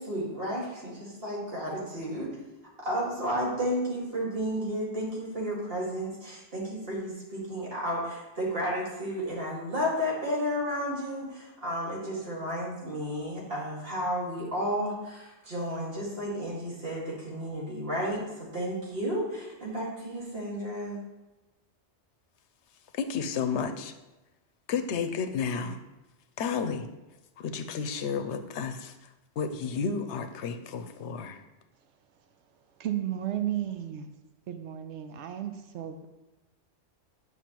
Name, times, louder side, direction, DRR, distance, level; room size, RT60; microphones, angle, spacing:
voice 1, 0.0-2.3 2.8-21.0, equal, 55° right, -5 dB, 2.2 m, -32 dB
voice 2, 22.9-23.9 24.7-25.8 26.4-26.9 27.4-29.1 29.4-31.4, left 6 dB, 85° left, 9 dB, 0.9 m, -32 dB
voice 3, 32.8-34.1 34.5-36.1, right 11 dB, 85° right, 7 dB, 0.9 m, -33 dB
9.1 x 6.1 x 3.0 m, 1.1 s
omnidirectional pair, 1.2 m